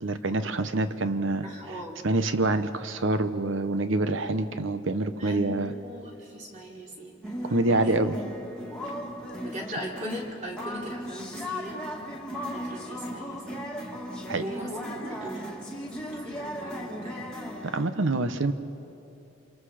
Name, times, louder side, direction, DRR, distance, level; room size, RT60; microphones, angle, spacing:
voice 1, 0.0-1.8 2.0-5.7 7.4-8.2 14.3-14.4 17.6-18.5, right 2 dB, 70° right, 10 dB, 1.0 m, -26 dB
voice 2, 1.4-2.0 5.2-8.0 9.4-11.8 12.4-13.7 14.4-15.5 15.8-17.3, equal, 35° right, -2 dB, 3.6 m, -39 dB
sound 1, 7.2-17.8, equal, 5° left, 1.9 m, -36 dB
28.0 x 26.0 x 5.0 m, 2.8 s
head